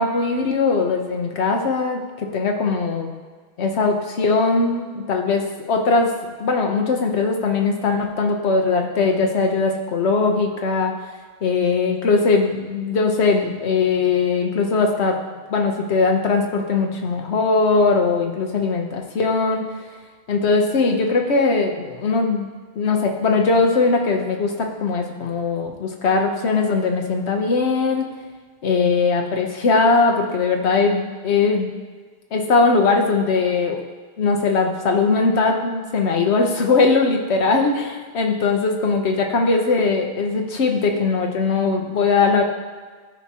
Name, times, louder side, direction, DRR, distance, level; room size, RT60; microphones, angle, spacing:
voice 1, 0.0-3.1 3.6-6.1 6.4-10.9 11.4-15.2 15.5-19.6 20.3-22.5 22.8-28.1 28.6-31.8 32.3-33.8 34.2-42.4, left 4 dB, 85° left, 3 dB, 1.2 m, -20 dB
13.5 x 4.7 x 2.9 m, 1.5 s
omnidirectional pair, 1.1 m